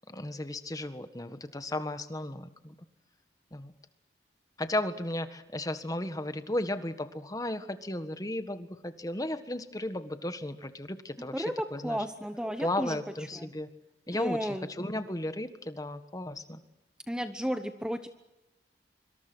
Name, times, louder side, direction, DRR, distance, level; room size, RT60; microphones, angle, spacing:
voice 1, 0.1-2.7 3.5-3.7 4.6-12.0 12.6-13.7 14.1-16.6, left 1 dB, 20° left, 10 dB, 1.6 m, -35 dB
voice 2, 11.3-13.0 13.3-13.5 14.1-14.7 17.1-18.1, equal, 5° right, 8 dB, 1.0 m, -33 dB
25.5 x 25.0 x 6.3 m, 0.98 s
head